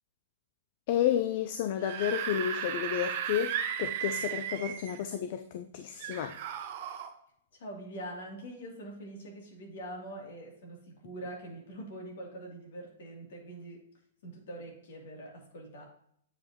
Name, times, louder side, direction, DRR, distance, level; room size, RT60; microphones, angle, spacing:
voice 1, 0.9-6.4, left 10 dB, 55° left, 9 dB, 0.5 m, -31 dB
Screaming / Screech, 1.7-5.0 6.0-7.1, right 9 dB, 50° right, 0.9 m, -35 dB
voice 2, 7.5-13.8 14.2-15.8, right 1 dB, 70° left, 0 dB, 2.8 m, -44 dB
8.8 x 5.4 x 2.9 m, 0.69 s
hypercardioid pair, 125°, 0 cm